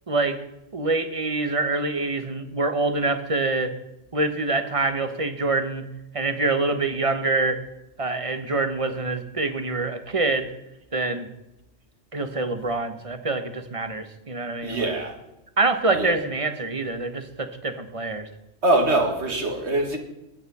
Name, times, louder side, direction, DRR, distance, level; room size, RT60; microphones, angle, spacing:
voice 1, 0.1-0.4 0.7-3.7 4.1-5.9 6.1-7.6 8.0-10.5 10.9-11.3 12.1-14.9 15.6-18.3, right 3 dB, 30° right, 1.1 m, -25 dB
voice 2, 14.6-15.2 15.9-16.2 18.6-20.0, right 2 dB, 65° right, 2.2 m, -23 dB
21.0 x 8.7 x 4.2 m
omnidirectional pair, 1.2 m